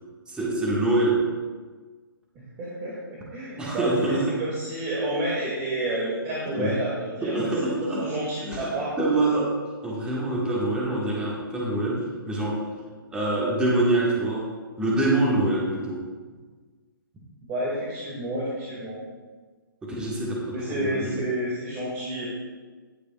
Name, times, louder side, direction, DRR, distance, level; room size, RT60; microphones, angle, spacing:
voice 1, 0.3-1.3 3.6-4.4 6.6-6.7 7.2-8.0 8.4-8.7 9.0-9.5 9.8-12.7 13.1-16.1 19.8-21.2, right 2 dB, 5° right, -5 dB, 1.6 m, -25 dB
voice 2, 2.4-8.9 17.5-19.0 20.5-22.3, right 1 dB, 25° right, -6 dB, 2.0 m, -30 dB
18.0 x 6.7 x 2.3 m, 1.4 s
hypercardioid pair, 145°, 12 cm